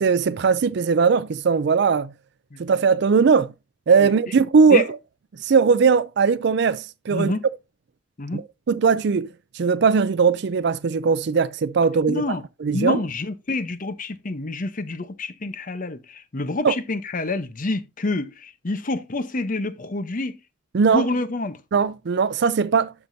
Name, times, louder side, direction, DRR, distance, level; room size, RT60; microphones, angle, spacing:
voice 1, 0.0-2.1 2.6-3.5 3.9-4.9 5.4-7.3 8.3-8.4 8.7-9.3 9.5-12.2 12.6-13.0 16.6-16.7 20.7-21.1 21.7-22.9, right 5 dB, 60° right, 0.4 m, -19 dB
voice 2, 7.1-7.4 8.2-8.4 12.1-12.4 12.7-20.4 20.9-21.6, left 2 dB, 45° left, 0.8 m, -27 dB
12.0 x 6.0 x 2.7 m
head